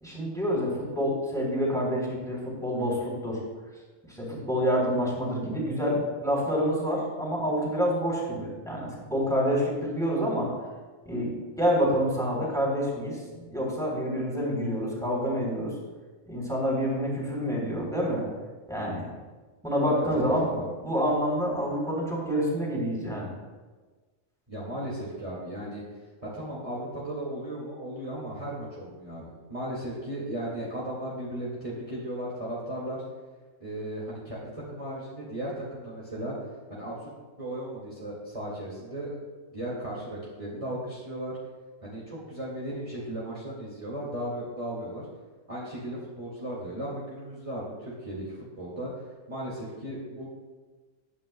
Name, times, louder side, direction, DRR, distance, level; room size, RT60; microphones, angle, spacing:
voice 1, 0.0-3.4 4.1-10.5 11.0-15.7 16.3-18.2 18.7-19.1 19.6-23.3, equal, ahead, -4 dB, 3.2 m, -27 dB
voice 2, 19.9-20.6 24.5-25.8 26.2-33.0 33.6-36.3 36.7-37.1 37.4-39.2 39.5-41.4 41.8-45.0 45.5-50.3, right 1 dB, 25° right, -7 dB, 2.0 m, -36 dB
20.0 x 9.1 x 2.2 m, 1.4 s
omnidirectional pair, 1.5 m